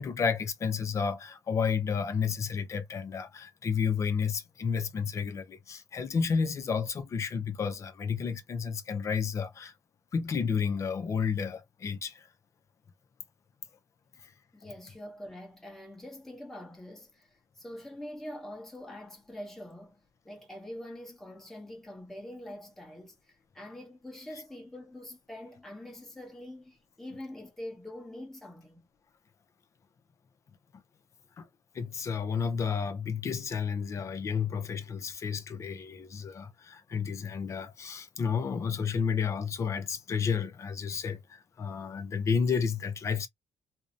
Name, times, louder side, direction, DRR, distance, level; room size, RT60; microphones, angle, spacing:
voice 1, 0.0-9.7 10.1-12.3 14.2-14.3 31.4-31.5 31.7-43.3, left 6 dB, 40° left, 0.4 m, -31 dB
voice 2, 14.5-28.9 40.9-41.0, left 1 dB, 5° left, 0.9 m, -44 dB
2.6 x 2.0 x 2.4 m
cardioid pair, 140°, 8 cm